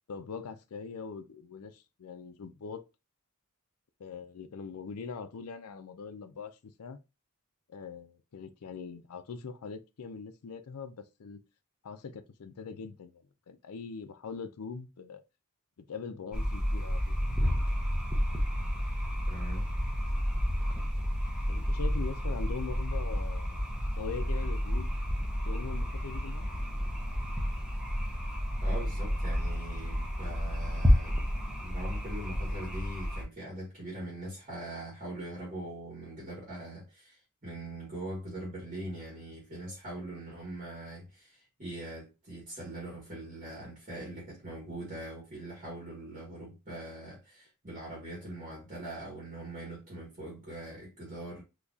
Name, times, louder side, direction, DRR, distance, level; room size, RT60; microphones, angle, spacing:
voice 1, 0.1-2.8 4.0-7.0 7.7-11.4 11.8-15.2 15.8-17.2 21.5-23.6 24.0-25.0 25.4-26.5, left 5 dB, 80° left, 0.5 m, -42 dB
sound 1, 16.3-33.2, equal, 5° right, 0.7 m, -30 dB
voice 2, 19.3-19.6 28.6-31.2 31.5-51.4, right 1 dB, 35° right, 1.5 m, -42 dB
3.9 x 2.9 x 2.3 m
head